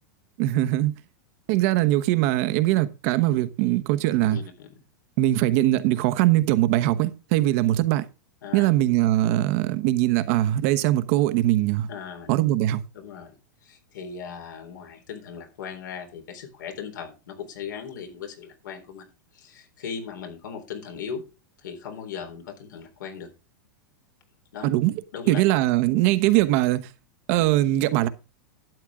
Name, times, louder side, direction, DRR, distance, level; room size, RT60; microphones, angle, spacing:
voice 1, 0.4-0.9 1.5-4.4 5.2-8.1 8.5-11.9 12.3-12.8 24.6-25.0 25.3-26.9 27.3-28.1, right 15 dB, 50° right, 1.0 m, -21 dB
voice 2, 4.2-4.7 8.4-8.7 11.9-12.3 12.9-13.3 13.6-21.2 21.6-23.3 24.5-24.7 25.1-25.4, left 6 dB, 80° left, 4.0 m, -38 dB
12.0 x 8.8 x 3.7 m
supercardioid pair, 140°, 10 cm